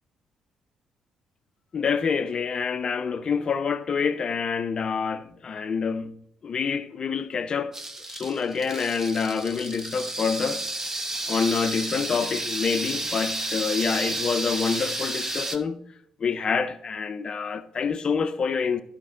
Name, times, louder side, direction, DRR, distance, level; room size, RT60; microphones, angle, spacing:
voice 1, 1.7-6.1 6.4-7.8 8.1-10.6 11.3-15.8 16.2-18.8, left 6 dB, 40° left, 0.6 m, -27 dB
sound 1, 7.7-15.6, right 2 dB, 20° right, 1.0 m, -31 dB
12.0 x 5.1 x 3.7 m
figure-of-eight pair, 45°, 2 cm